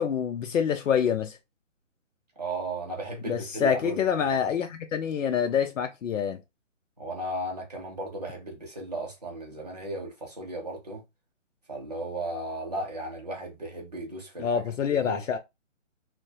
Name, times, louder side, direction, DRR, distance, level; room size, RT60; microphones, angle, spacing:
voice 1, 0.0-1.4 3.3-6.4 14.4-15.4, left 7 dB, 80° left, 0.5 m, -26 dB
voice 2, 2.4-4.4 7.0-11.0 11.7-15.2, right 2 dB, 35° right, 0.6 m, -35 dB
2.3 x 2.1 x 2.7 m
hypercardioid pair, 180°, 38 cm